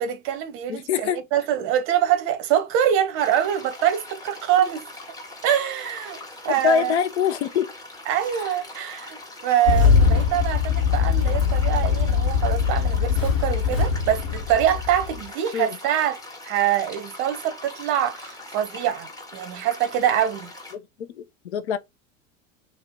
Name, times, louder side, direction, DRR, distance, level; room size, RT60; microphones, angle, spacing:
voice 1, 0.0-4.8 5.4-6.2 6.4-6.9 8.1-20.5, right 10 dB, 35° right, 0.7 m, -24 dB
voice 2, 0.7-1.2 6.5-7.8 8.4-8.6 15.5-15.8 20.7-21.8, left 7 dB, 60° left, 0.5 m, -25 dB
sound 1, 3.2-20.7, left 2 dB, 10° left, 0.9 m, -41 dB
Engine starting, 9.7-15.2, left 6 dB, 80° left, 2.1 m, -21 dB
3.3 x 2.8 x 3.5 m
figure-of-eight pair, 80°, 38 cm